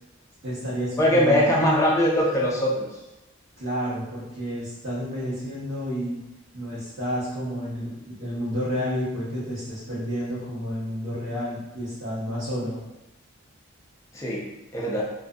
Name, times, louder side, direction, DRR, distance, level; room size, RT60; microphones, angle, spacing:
voice 1, 0.4-1.6 3.6-6.2 6.5-12.8, equal, 65° right, -13 dB, 1.0 m, -30 dB
voice 2, 1.0-2.9 14.1-15.0, left 1 dB, 15° left, -5 dB, 0.4 m, -21 dB
2.5 x 2.4 x 2.2 m, 0.99 s
head